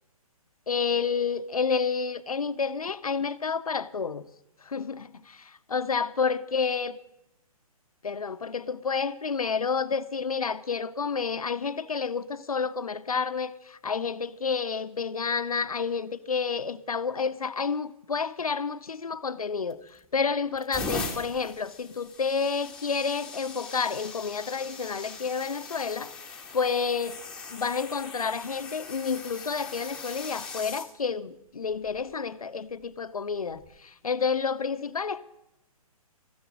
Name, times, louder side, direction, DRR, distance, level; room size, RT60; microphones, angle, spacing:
voice 1, 0.7-4.2 4.6-7.0 8.0-19.8 20.1-26.1 26.5-27.2 27.5-35.2, left 5 dB, 70° left, 0.8 m, -30 dB
sound 1, 19.7-20.1 20.6-30.9 31.7-32.0 33.5-33.7, left 4 dB, 5° left, 1.7 m, -40 dB
14.0 x 10.5 x 7.4 m
figure-of-eight pair, 130°, 19 cm